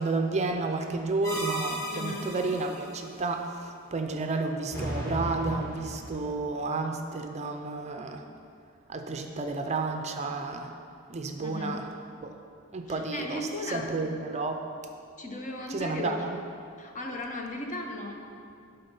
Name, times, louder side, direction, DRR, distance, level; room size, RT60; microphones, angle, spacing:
voice 1, 0.0-8.2 8.9-10.7 11.1-11.8 12.2-12.4 12.7-14.7 15.7-16.4, right 3 dB, 30° right, 5 dB, 0.5 m, -31 dB
sound 1, 1.2-2.9 4.7-6.3, equal, 15° left, 1.3 m, -35 dB
voice 2, 1.9-2.3 11.4-11.8 12.9-13.9 15.2-16.1 16.8-18.1, left 2 dB, 35° left, 2 dB, 0.9 m, -36 dB
12.0 x 4.0 x 5.4 m, 2.5 s
head